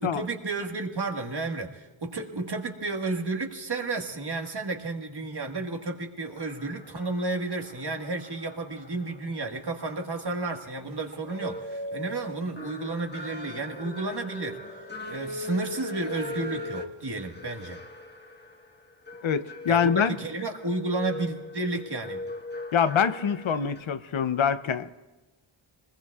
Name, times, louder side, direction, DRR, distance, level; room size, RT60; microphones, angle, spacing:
voice 1, 0.0-14.6 15.1-17.8 19.7-22.2, right 3 dB, 50° right, 3 dB, 1.7 m, -32 dB
sound 1, 6.4-23.8, left 2 dB, 20° left, 1.4 m, -40 dB
voice 2, 19.2-20.2 22.7-24.9, left 7 dB, 70° left, 12 dB, 0.7 m, -25 dB
26.0 x 20.5 x 2.4 m, 1.2 s
wide cardioid pair, 80°, 49 cm